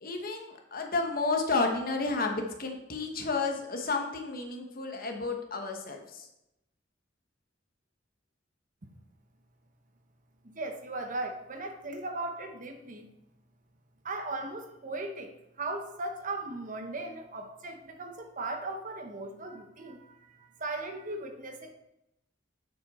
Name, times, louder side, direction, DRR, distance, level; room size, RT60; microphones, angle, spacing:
voice 1, 0.0-6.3, left 3 dB, 50° left, 3 dB, 1.2 m, -31 dB
voice 2, 10.4-13.1 14.0-21.7, right 2 dB, 45° right, 5 dB, 0.9 m, -38 dB
7.2 x 6.0 x 4.2 m, 0.87 s
head